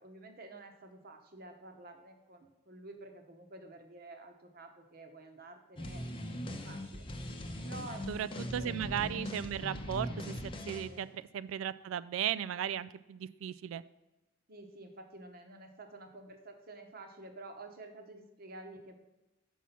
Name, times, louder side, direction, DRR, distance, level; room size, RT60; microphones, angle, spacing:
voice 1, 0.0-7.1 7.6-9.2 10.8-11.1 14.5-19.0, right 2 dB, 50° right, 5 dB, 1.0 m, -50 dB
sound 1, 5.8-10.9, left 1 dB, 25° left, 0.7 m, -40 dB
voice 2, 8.1-10.4 10.7-13.8, right 9 dB, 85° right, 16 dB, 0.3 m, -36 dB
6.2 x 5.5 x 5.8 m, 1.0 s
head